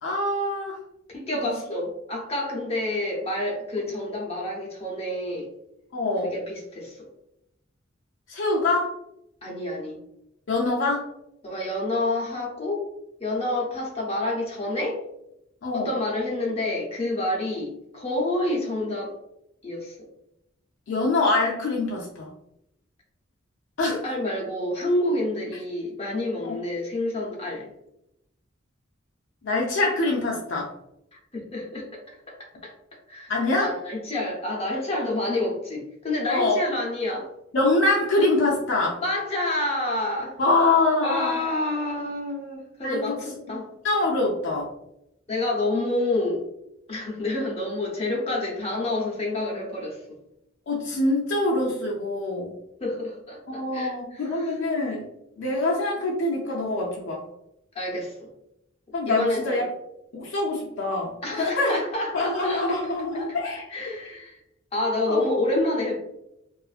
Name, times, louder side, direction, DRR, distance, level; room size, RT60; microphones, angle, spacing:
voice 1, 0.0-0.8 1.3-1.8 5.9-6.3 8.3-9.0 10.5-11.1 15.6-15.9 20.9-22.3 23.8-24.0 26.4-26.6 29.4-30.7 33.3-33.7 36.3-36.6 37.5-39.0 40.4-41.4 42.8-43.2 43.8-44.7 50.7-52.5 53.5-55.1 55.4-57.2 58.9-59.7 60.1-61.1 61.6-61.8 62.1-63.7 65.1-65.2, left 2 dB, 70° left, -3 dB, 0.4 m, -24 dB
voice 2, 1.1-5.5 6.2-7.1 9.4-10.0 11.4-12.9 13.2-15.0 15.7-19.1 19.6-19.9 23.9-27.7 31.1-32.4 32.6-32.7 33.1-33.3 33.6-37.3 39.0-40.4 41.0-43.7 45.3-46.4 46.9-50.2 52.8-54.5 57.7-58.3 59.1-59.6 61.2-64.4 64.7-66.0, left 1 dB, 30° left, -2 dB, 0.7 m, -28 dB
2.5 x 2.4 x 2.4 m, 0.83 s
head